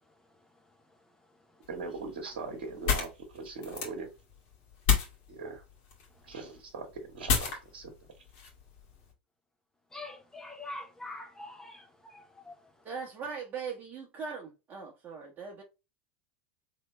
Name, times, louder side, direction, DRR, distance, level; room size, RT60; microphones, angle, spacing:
sound 1, 1.6-9.1, left 7 dB, 55° left, 1.9 m, -34 dB
voice 1, 1.7-4.1 5.3-5.6 6.3-7.9, right 4 dB, 65° right, 1.3 m, -40 dB
voice 2, 9.9-12.5, left 2 dB, 10° left, 0.9 m, -44 dB
voice 3, 12.8-15.6, right 5 dB, 35° right, 1.1 m, -40 dB
4.2 x 3.3 x 3.0 m
hypercardioid pair, 85°, 5 cm